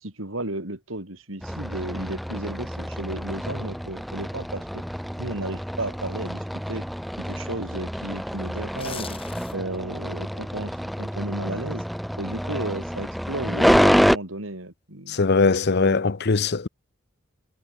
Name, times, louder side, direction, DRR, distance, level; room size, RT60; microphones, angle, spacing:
voice 1, 0.0-4.8 5.2-6.9 7.2-9.2 9.5-11.8 12.2-15.2 15.8-16.0, right 1 dB, 90° right, 5.4 m, -34 dB
sound 1, 1.4-14.2, equal, ahead, 1.9 m, -27 dB
sound 2, 8.6-9.8 10.2-10.4, left 7 dB, 30° left, 2.1 m, -39 dB
voice 2, 15.1-16.7, left 4 dB, 55° left, 0.8 m, -21 dB
head